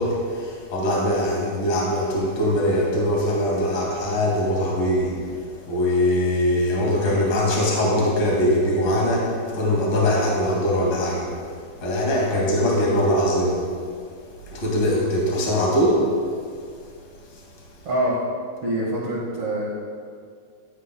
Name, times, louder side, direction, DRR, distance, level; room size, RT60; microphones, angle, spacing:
voice 1, 0.0-11.3 11.8-13.6 14.5-16.1, left 1 dB, 35° left, -3 dB, 2.0 m, -22 dB
voice 2, 17.8-18.2 18.6-19.7, right 1 dB, 60° right, -5 dB, 1.5 m, -25 dB
13.5 x 11.5 x 2.2 m, 2.2 s
omnidirectional pair, 4.8 m